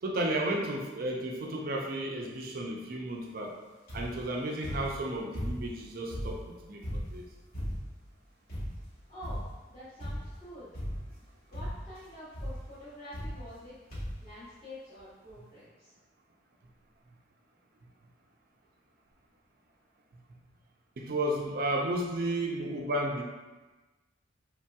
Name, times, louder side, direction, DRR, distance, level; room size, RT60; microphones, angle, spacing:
voice 1, 0.0-3.5 3.9-7.3 21.0-23.2, right 1 dB, 50° right, 0 dB, 0.4 m, -33 dB
sound 1, 3.9-4.3 4.6-5.8 6.1-8.0 8.5-8.9 9.2-9.6 10.0-10.4 10.7-11.2 11.5-12.0 12.3-12.6 13.1-13.6 13.9-14.3 15.0-15.1 15.3-15.4, equal, 50° left, 1.2 m, -37 dB
voice 2, 9.1-10.7 11.5-13.8 14.2-15.9, left 1 dB, 25° left, -14 dB, 0.9 m, -47 dB
3.1 x 2.7 x 2.2 m, 1.2 s
head